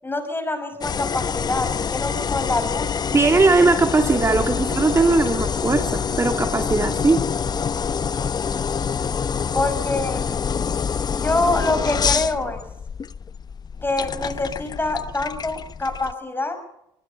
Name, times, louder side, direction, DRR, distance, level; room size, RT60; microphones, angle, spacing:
voice 1, 0.0-2.9 9.5-10.3 11.1-12.6 13.8-16.6, left 2 dB, 20° left, 8 dB, 6.2 m, -25 dB
sound 1, 0.8-16.1, left 6 dB, 35° left, 0.8 m, -26 dB
voice 2, 3.1-7.2, right 3 dB, 25° right, 5 dB, 2.5 m, -19 dB
25.0 x 19.5 x 5.8 m, 0.81 s
supercardioid pair, 75°, 11 cm